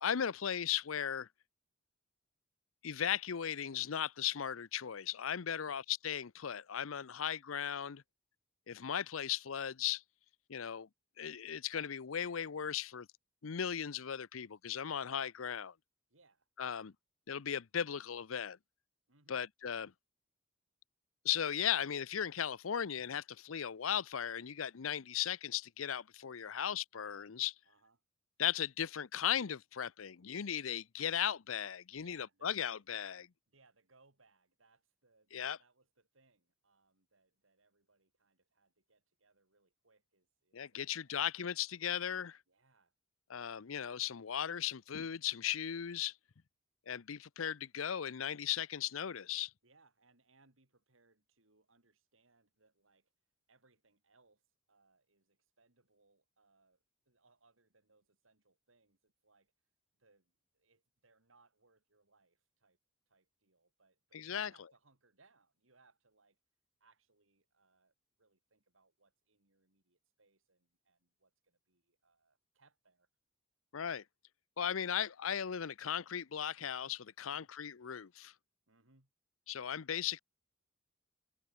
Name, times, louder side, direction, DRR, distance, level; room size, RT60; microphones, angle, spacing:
voice 1, 0.0-1.3 2.8-8.0 8.7-10.0 10.5-10.9 11.2-13.1 13.4-15.7 16.6-16.9 17.3-18.6 19.3-19.9 21.2-27.5 28.4-33.3 35.3-35.6 40.5-42.4 43.3-46.1 46.9-49.5 64.1-64.5 73.7-74.0 74.6-78.3 79.5-80.2, left 9 dB, 90° left, 0.6 m, -37 dB
voice 2, 7.1-7.4 16.1-16.5 19.1-19.4 26.4-26.7 27.6-28.0 32.0-32.8 33.5-41.3 42.5-42.9 49.6-53.1 53.5-54.4 54.7-59.5 60.0-62.8 63.1-66.4 66.8-73.1 77.2-77.5 78.7-79.1, right 3 dB, 75° right, 4.1 m, -71 dB
head